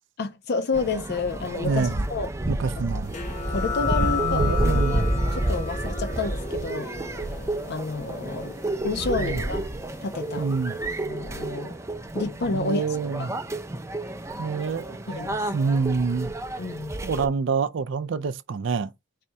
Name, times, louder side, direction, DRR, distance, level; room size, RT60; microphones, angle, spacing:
voice 1, 0.2-2.3 3.5-5.1 5.3-7.2 7.7-8.5 8.8-9.7 10.0-10.5 11.1-11.8 12.1-12.8 13.2-13.3 15.1-15.5 16.6-16.9, left 3 dB, 60° left, 0.5 m, -29 dB
sound 1, 0.7-17.3, right 1 dB, 15° right, 0.5 m, -30 dB
voice 2, 1.6-2.0 2.5-3.2 4.0-5.0 9.0-9.4 10.4-10.8 12.5-13.3 14.4-15.0 15.5-16.3 17.0-18.9, right 5 dB, 70° right, 0.4 m, -27 dB
sound 2, 3.1-10.4, left 6 dB, 40° left, 0.9 m, -34 dB
4.1 x 2.7 x 3.4 m
head